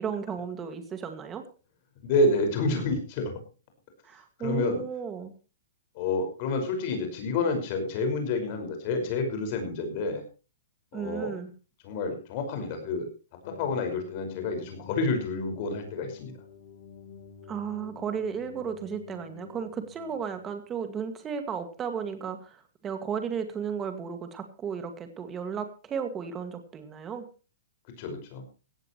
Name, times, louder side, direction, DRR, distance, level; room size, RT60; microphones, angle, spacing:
voice 1, 0.0-1.4 4.0-5.3 10.9-11.5 17.5-27.2, right 7 dB, 15° right, 8 dB, 2.1 m, -34 dB
voice 2, 2.0-3.3 4.4-4.8 6.0-10.2 10.9-11.3 11.8-13.1 13.5-16.3 28.0-28.4, left 3 dB, 35° left, 6 dB, 5.4 m, -29 dB
sound 1, 13.4-20.5, left 6 dB, 50° left, 4.7 m, -48 dB
17.0 x 15.0 x 3.1 m, 0.33 s
hypercardioid pair, 170°, 0 cm